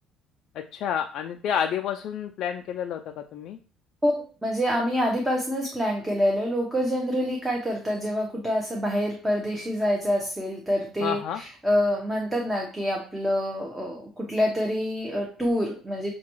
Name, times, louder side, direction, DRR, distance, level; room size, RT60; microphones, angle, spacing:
voice 1, 0.5-3.6 11.0-11.4, left 8 dB, 65° left, 4 dB, 0.3 m, -29 dB
voice 2, 4.0-16.1, equal, 15° right, 0 dB, 0.9 m, -26 dB
6.5 x 2.3 x 3.0 m, 0.41 s
cardioid pair, 115°, 0 cm